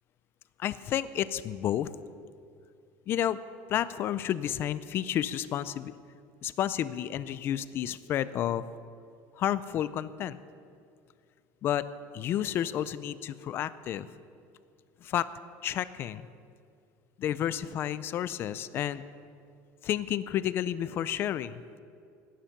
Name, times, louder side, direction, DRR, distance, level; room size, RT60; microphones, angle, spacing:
voice 1, 0.6-1.9 3.1-3.4 3.7-5.9 6.4-8.7 9.4-10.4 11.6-11.9 12.1-14.1 15.0-15.3 15.6-16.3 17.2-19.0 19.8-21.6, left 11 dB, 35° left, 15 dB, 0.4 m, -31 dB
17.5 x 10.0 x 5.8 m, 2.3 s
cardioid pair, 175°, 7 cm